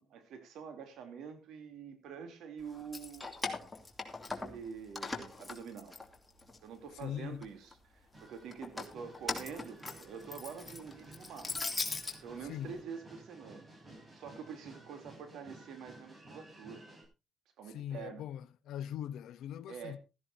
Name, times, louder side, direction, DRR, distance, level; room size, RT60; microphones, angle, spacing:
voice 1, 0.1-3.3 4.4-6.0 6.6-11.7 12.0-13.7 14.1-17.0 17.6-18.2 19.7-20.0, right 6 dB, 80° right, 3.3 m, -46 dB
Keys jangling, 2.7-4.7 5.0-6.6 7.0-7.7 8.5-12.2, left 3 dB, 15° left, 2.8 m, -40 dB
voice 2, 7.0-7.4 12.5-12.7 17.7-20.0, left 10 dB, 80° left, 0.8 m, -41 dB
sound 1, 8.1-17.1, right 1 dB, 35° right, 7.0 m, -55 dB
16.0 x 14.0 x 2.8 m
cardioid pair, 90°, 0 cm